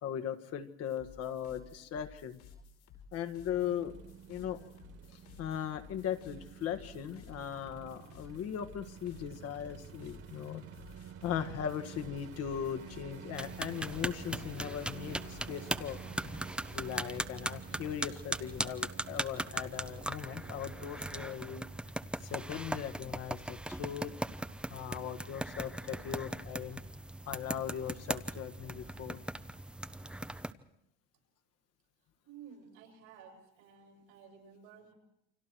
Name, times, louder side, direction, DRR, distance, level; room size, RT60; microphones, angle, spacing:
voice 1, 0.0-2.4 3.1-3.9 4.3-4.7 5.1-10.7 11.2-16.0 16.7-21.7 22.2-24.1 24.7-26.8 27.3-29.2, left 9 dB, 50° left, 8 dB, 1.8 m, -39 dB
sound 1, 0.8-17.0, left 5 dB, 80° left, 5.4 m, -56 dB
sound 2, 3.5-21.6, right 8 dB, 45° right, 2.3 m, -51 dB
sound 3, 13.3-30.5, right 1 dB, 5° right, 0.8 m, -39 dB
voice 2, 32.2-34.9, right 7 dB, 85° right, 2 dB, 6.7 m, -54 dB
29.5 x 25.0 x 4.7 m, 0.80 s
supercardioid pair, 115°, 31 cm